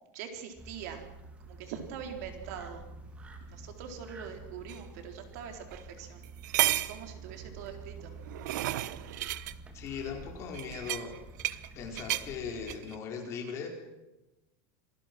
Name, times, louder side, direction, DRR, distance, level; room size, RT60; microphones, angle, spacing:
voice 1, 0.1-1.1 1.5-2.8 3.5-6.5 6.9-8.1, right 7 dB, 65° right, 5 dB, 4.1 m, -43 dB
sound 1, 0.6-12.8, right 3 dB, 15° right, 2.0 m, -48 dB
sound 2, 4.7-4.8 5.7-5.8 6.2-7.0 8.0-9.5 10.5-11.7 12.0-12.3 12.7-13.0, right 15 dB, 85° right, 1.0 m, -32 dB
voice 2, 9.7-11.1 11.7-13.7, left 6 dB, 30° left, 2 dB, 4.6 m, -39 dB
27.0 x 20.0 x 6.1 m, 1.0 s
supercardioid pair, 170°, 9 cm